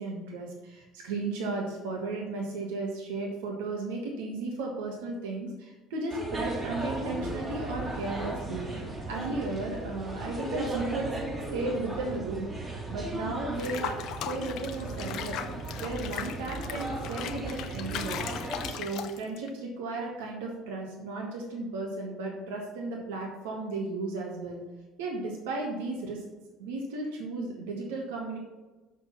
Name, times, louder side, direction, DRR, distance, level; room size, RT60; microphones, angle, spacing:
voice 1, 0.0-8.7 9.1-11.1 11.5-12.5 12.9-14.0 14.2-15.4 15.8-18.2 18.7-24.6 25.0-26.2 26.6-28.4, right 2 dB, 75° right, -1 dB, 1.5 m, -34 dB
sound 1, 6.1-18.7, right 2 dB, 25° right, 2.5 m, -36 dB
Water / Bathtub (filling or washing), 13.6-19.5, left 9 dB, 60° left, 0.7 m, -38 dB
6.4 x 6.3 x 6.0 m, 1.1 s
hypercardioid pair, 60°, 0 cm